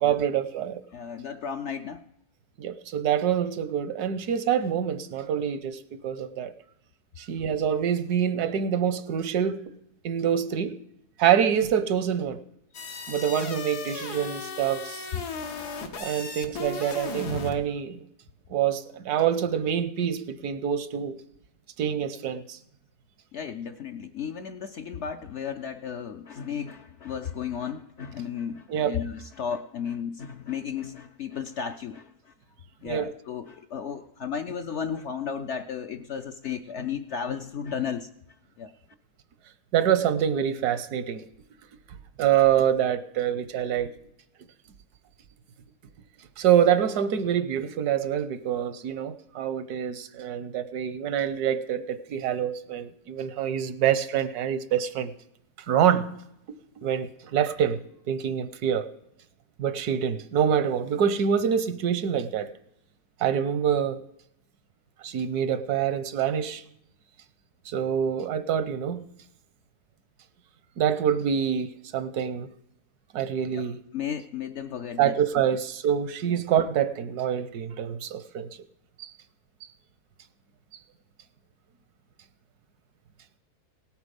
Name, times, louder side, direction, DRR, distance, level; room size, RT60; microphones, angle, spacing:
voice 1, 0.0-0.8 2.6-6.5 7.2-9.6 10.0-10.7 11.2-12.4 13.1-15.1 16.0-18.0 18.5-21.1 21.8-22.6 28.7-29.0 32.8-33.1 39.7-41.2 42.2-43.9 46.4-55.1 55.7-56.1 56.8-58.9 59.6-62.5 63.2-64.0 65.0-66.6 67.7-69.1 70.8-72.5 73.1-73.8 75.0-78.5 79.0-79.1, right 9 dB, 80° right, 1.3 m, -26 dB
voice 2, 0.9-2.0 23.3-32.3 32.8-38.1 38.6-38.7 73.5-73.6 73.9-75.2 76.3-76.4, left 7 dB, 60° left, 0.7 m, -34 dB
sound 1, 12.7-17.6, left 4 dB, 80° left, 1.8 m, -36 dB
17.5 x 8.2 x 5.2 m
omnidirectional pair, 1.7 m